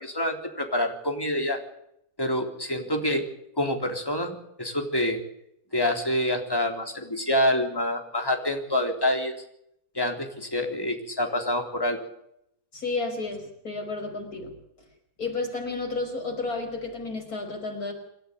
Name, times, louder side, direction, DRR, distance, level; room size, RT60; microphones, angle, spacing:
voice 1, 0.0-1.6 2.2-3.3 3.6-5.2 5.7-9.3 10.0-12.0, left 1 dB, 15° left, 4 dB, 3.6 m, -27 dB
voice 2, 12.7-14.5 15.2-17.9, left 3 dB, 80° left, 3 dB, 5.8 m, -31 dB
27.5 x 13.0 x 8.1 m, 0.77 s
omnidirectional pair, 1.6 m